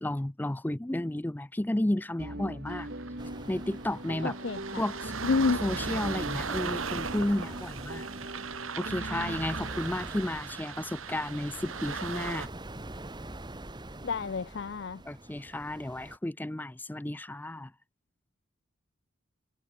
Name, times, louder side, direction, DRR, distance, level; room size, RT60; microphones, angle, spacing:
voice 1, 0.0-2.9 3.5-4.4 4.8-5.1 5.6-8.1 8.8-12.5 15.1-17.7, left 1 dB, 10° left, 0.4 m, -32 dB
sound 1, 2.2-9.8, right 1 dB, 50° right, 4.2 m, -41 dB
sound 2, 2.7-12.5, right 5 dB, 90° right, 2.4 m, -38 dB
sound 3, 3.2-16.2, right 1 dB, 20° right, 1.5 m, -44 dB
voice 2, 4.2-4.8 5.2-5.6 14.0-15.0, left 4 dB, 60° left, 0.5 m, -29 dB
head